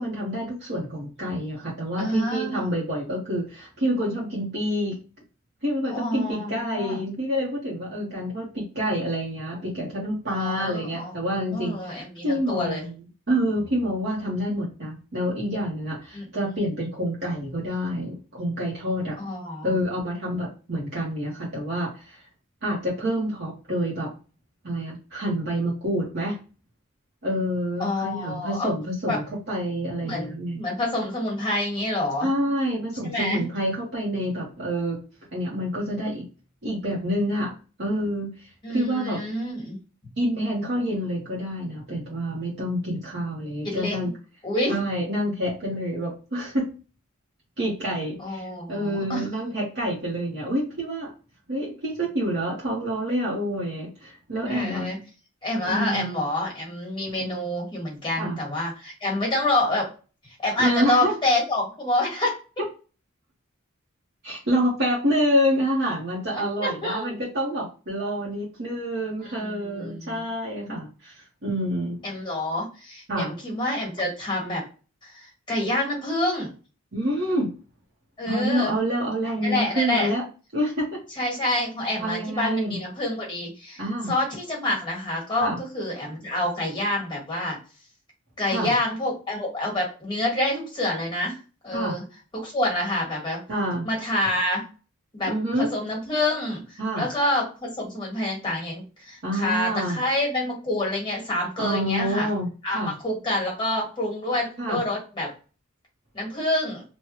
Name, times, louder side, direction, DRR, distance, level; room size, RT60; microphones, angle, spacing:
voice 1, 0.0-5.0 5.6-12.9 13.3-19.2 19.6-22.2 22.6-24.1 24.6-26.4 27.2-30.6 32.2-35.0 35.3-36.2 36.6-37.5 37.8-39.2 40.2-44.1 44.7-46.7 47.6-51.1 51.5-55.0 55.6-56.1 58.2-58.4 60.6-61.1 64.2-72.0 73.1-73.3 76.9-77.5 78.3-80.2 80.5-81.0 82.0-82.8 83.8-84.1 85.4-85.6 88.4-88.7 91.7-91.9 93.5-93.9 95.3-95.7 96.8-97.1 99.2-100.0 101.6-102.9 104.6-104.8, equal, 50° right, -5 dB, 1.0 m, -27 dB
voice 2, 2.0-2.7 5.9-7.0 10.3-11.1 11.5-12.8 16.1-16.3 19.2-19.7 27.8-28.7 29.1-29.2 30.0-30.3 30.5-32.3 33.0-33.4 38.6-39.8 43.6-44.1 44.4-44.8 48.2-49.2 54.4-55.0 55.4-59.9 60.4-62.4 66.3-67.1 69.2-70.2 70.7-70.8 72.0-74.6 75.0-76.5 78.2-78.7 79.4-80.1 81.2-83.8 84.1-87.6 88.4-91.4 91.6-92.0 92.3-93.4 93.8-94.6 95.1-102.3 102.6-105.3 106.1-106.8, left 1 dB, 20° left, -1 dB, 1.4 m, -27 dB
3.1 x 2.2 x 2.9 m, 0.35 s
head